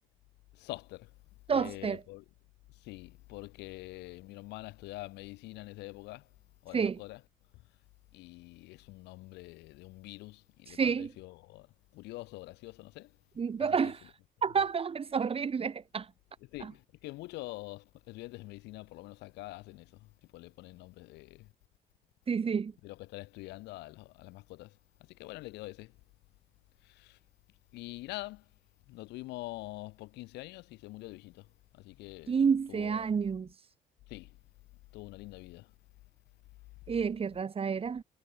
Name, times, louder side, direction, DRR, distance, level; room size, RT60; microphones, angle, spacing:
voice 1, 0.5-1.1 1.5-2.2 2.8-6.2 6.6-7.2 8.1-11.7 11.9-13.1 16.5-20.1 20.3-21.5 22.8-24.8 25.1-25.9 26.8-27.2 27.7-28.4 28.9-31.5 31.7-32.4 32.7-33.0 34.1-34.3 34.9-35.7, left 20 dB, 90° left, 6.8 m, -45 dB
voice 2, 1.5-2.0 6.7-7.0 10.7-11.1 13.4-14.1 14.4-16.1 16.6-16.7 22.3-22.7 32.3-33.5 36.9-38.0, right 6 dB, 35° right, 5.1 m, -30 dB
cardioid pair, 110°, 17 cm